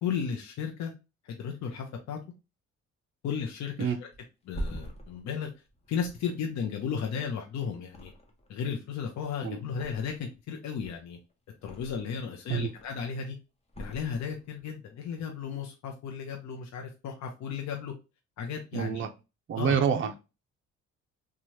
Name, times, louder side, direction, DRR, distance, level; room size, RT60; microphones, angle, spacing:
voice 1, 0.0-0.9 1.2-2.2 3.2-4.1 4.4-5.5 5.9-8.1 8.5-11.2 11.6-13.4 13.8-17.9 18.4-19.0 19.6-19.8, left 7 dB, 65° left, 0.6 m, -34 dB
Thump thud, 4.1-7.4 7.8-8.6 8.9-10.4 10.7-12.2 12.6-13.1 13.7-14.7 15.0-15.2, equal, 20° left, 0.8 m, -43 dB
voice 2, 18.7-19.1 19.5-20.2, right 7 dB, 45° right, 0.5 m, -27 dB
3.1 x 2.3 x 2.7 m
cardioid pair, 90°, 30 cm